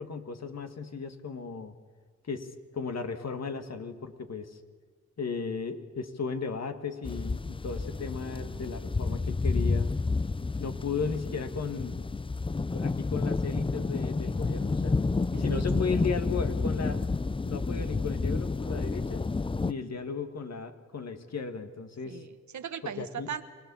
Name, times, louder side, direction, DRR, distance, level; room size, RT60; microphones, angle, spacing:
voice 1, 0.0-1.7 2.3-4.6 5.2-9.9 10.6-11.9 12.7-15.0 15.4-17.1 17.4-19.2 19.6-22.2 22.8-23.3, left 5 dB, 60° left, 7 dB, 2.0 m, -35 dB
sound 1, 7.0-19.7, left 3 dB, 20° left, 0.5 m, -30 dB
voice 2, 15.3-15.8 22.0-23.4, right 8 dB, 75° right, 9 dB, 1.4 m, -38 dB
24.5 x 18.0 x 7.1 m, 1.5 s
cardioid pair, 50°, 29 cm